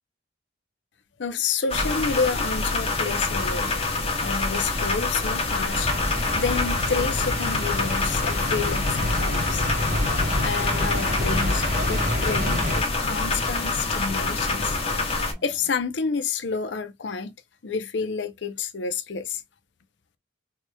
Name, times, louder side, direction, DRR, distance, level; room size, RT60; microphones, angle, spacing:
voice 1, 1.2-3.8 4.2-5.9 6.4-9.7 10.4-14.8 15.4-17.3 17.6-19.4, left 5 dB, 70° left, 0.6 m, -29 dB
sound 1, 1.7-15.3, left 3 dB, 35° left, 1.0 m, -26 dB
sound 2, 5.7-12.8, left 1 dB, 50° right, 2.1 m, -28 dB
sound 3, 9.6-15.7, right 1 dB, 25° right, 1.1 m, -45 dB
4.7 x 2.9 x 2.2 m
head